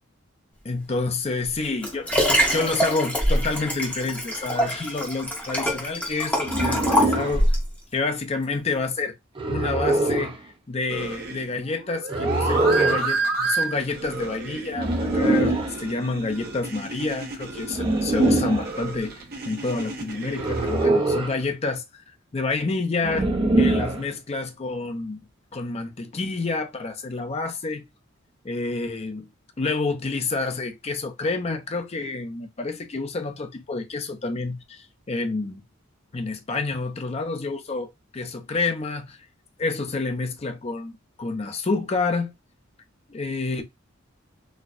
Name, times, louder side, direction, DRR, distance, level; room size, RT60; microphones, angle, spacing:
voice 1, 0.6-2.1 2.5-7.5 7.9-9.1 9.5-10.4 10.7-25.2 25.5-27.9 28.4-29.3 29.6-35.6 36.1-39.2 39.6-42.3 43.1-43.6, left 3 dB, 30° left, 0.5 m, -28 dB
Liquid, 1.4-7.7 8.3-8.4, equal, 5° left, 0.9 m, -24 dB
sound 1, 6.4-7.4 9.4-10.3 12.1-13.1 14.7-15.8 17.7-18.7 20.3-21.4 23.0-24.0, right 2 dB, 25° right, 0.6 m, -23 dB
sound 2, 10.9-20.9, right 3 dB, 50° right, 0.9 m, -31 dB
4.2 x 2.2 x 2.4 m
head